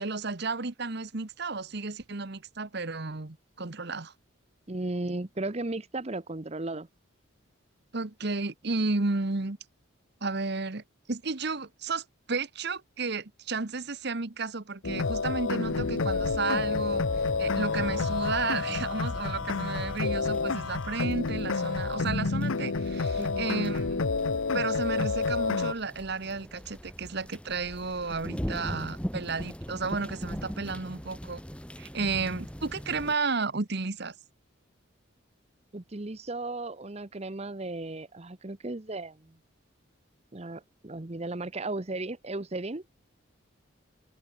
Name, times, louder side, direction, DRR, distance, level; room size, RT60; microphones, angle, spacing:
voice 1, 0.0-4.1 7.9-9.6 10.2-10.8 11.1-24.0 24.5-31.4 31.8-34.1, right 4 dB, 50° right, 1.2 m, -33 dB
voice 2, 4.7-6.9 23.2-23.5 35.7-39.4 40.3-42.8, right 2 dB, 30° right, 0.9 m, -35 dB
sound 1, 14.8-25.7, left 4 dB, 75° left, 0.9 m, -29 dB
sound 2, 15.6-33.1, equal, 5° left, 3.1 m, -41 dB
head